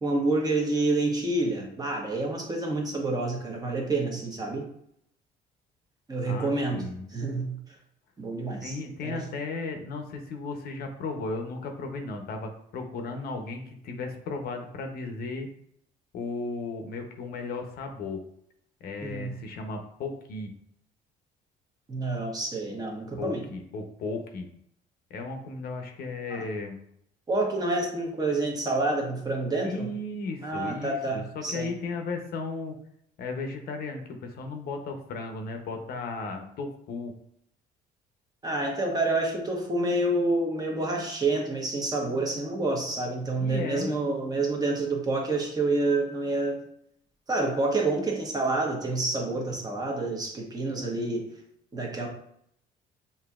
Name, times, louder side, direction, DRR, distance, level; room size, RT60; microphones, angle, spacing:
voice 1, 0.0-4.7 6.1-6.9 7.1-7.5 8.2-8.8 9.0-9.2 19.0-19.3 21.9-23.5 26.3-26.4 27.3-29.9 30.4-31.7 38.4-46.6 47.3-51.3 51.7-52.1, right 2 dB, 25° right, 0 dB, 1.1 m, -28 dB
voice 2, 6.3-7.1 8.6-15.5 16.1-18.2 18.8-20.5 23.2-24.5 25.1-26.8 29.6-32.8 33.2-37.1 43.4-43.9, left 3 dB, 65° left, 5 dB, 0.7 m, -35 dB
6.8 x 2.7 x 2.4 m, 0.71 s
cardioid pair, 110°, 17 cm